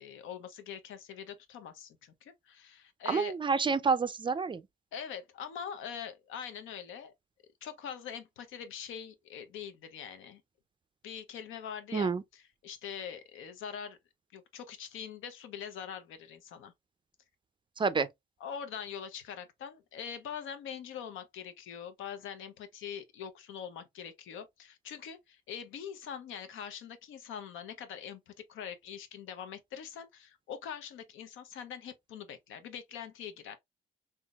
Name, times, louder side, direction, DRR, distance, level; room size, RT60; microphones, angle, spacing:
voice 1, 0.0-3.4 4.9-7.1 7.6-10.4 11.0-14.0 14.3-16.7 18.4-33.6, left 8 dB, 85° left, 0.7 m, -43 dB
voice 2, 3.1-4.6 11.9-12.2 17.8-18.1, right 5 dB, 25° right, 0.3 m, -28 dB
3.7 x 2.7 x 2.3 m
cardioid pair, 90°, 20 cm